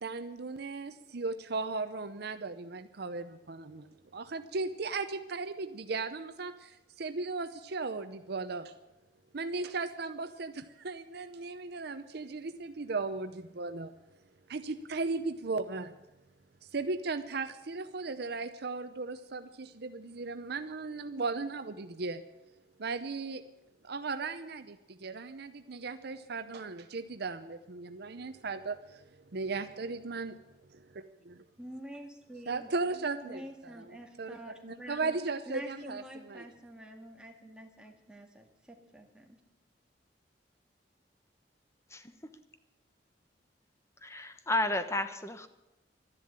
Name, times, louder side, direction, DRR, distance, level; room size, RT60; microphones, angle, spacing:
voice 1, 0.0-8.7 9.3-13.9 14.5-16.0 16.6-22.2 22.8-23.4 23.8-29.0 29.3-30.4 32.5-36.4, right 3 dB, 65° right, 9 dB, 0.7 m, -37 dB
voice 2, 31.6-32.7 33.2-35.2 35.5-39.4, equal, 5° right, 2 dB, 2.0 m, -47 dB
voice 3, 44.0-45.5, left 2 dB, 15° left, 9 dB, 1.0 m, -32 dB
12.5 x 11.0 x 8.8 m, 0.98 s
head